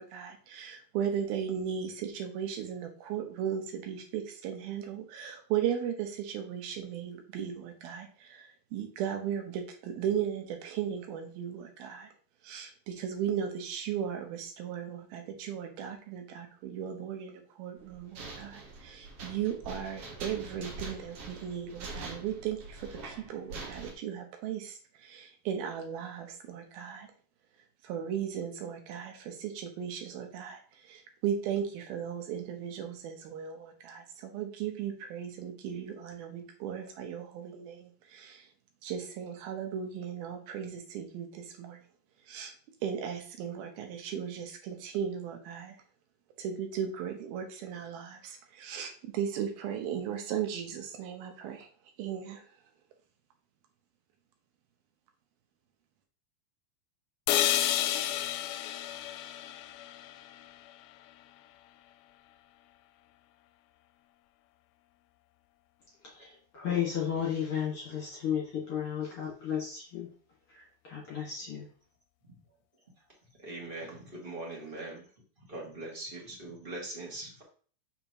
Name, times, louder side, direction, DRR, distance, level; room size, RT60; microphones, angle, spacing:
voice 1, 0.0-12.1 12.4-27.1 27.8-38.5 38.8-41.8 42.3-42.5 42.8-45.8 46.4-51.7 52.0-52.4, right 8 dB, 80° right, 4 dB, 2.9 m, -36 dB
sound 1, 17.8-23.9, right 3 dB, 55° right, 1.7 m, -44 dB
sound 2, 57.3-61.3, left 12 dB, 85° left, 2.3 m, -31 dB
voice 2, 66.0-70.1 70.5-71.7, left 8 dB, 45° left, -5 dB, 2.3 m, -34 dB
voice 3, 73.4-75.0 75.4-77.4, right 2 dB, 20° right, -3 dB, 1.7 m, -41 dB
7.2 x 5.9 x 3.0 m, 0.42 s
omnidirectional pair, 4.3 m